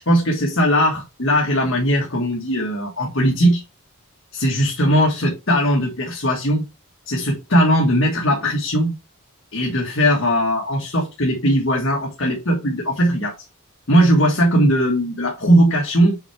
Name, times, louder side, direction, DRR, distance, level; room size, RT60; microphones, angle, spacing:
voice 1, 0.1-3.6 4.3-6.6 7.0-8.9 9.5-13.3 13.9-16.2, equal, 60° left, -1 dB, 1.6 m, -19 dB
7.6 x 4.5 x 3.4 m, 0.26 s
head